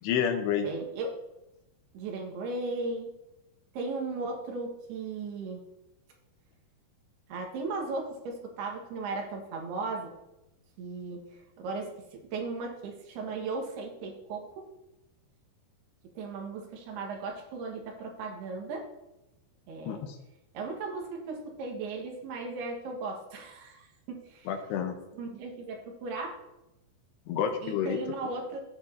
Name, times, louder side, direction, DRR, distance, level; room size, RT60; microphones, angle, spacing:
voice 1, 0.0-0.7 19.9-20.2 24.5-25.0 27.3-28.0, left 8 dB, 85° left, 6 dB, 3.0 m, -29 dB
voice 2, 0.6-1.2 1.9-3.1 3.7-5.7 7.3-10.1 10.8-14.7 16.1-18.9 19.7-20.0 20.5-24.5 25.1-26.4 27.6-28.6, right 3 dB, 80° right, 1 dB, 3.5 m, -36 dB
14.0 x 9.0 x 2.8 m, 0.93 s
omnidirectional pair, 4.6 m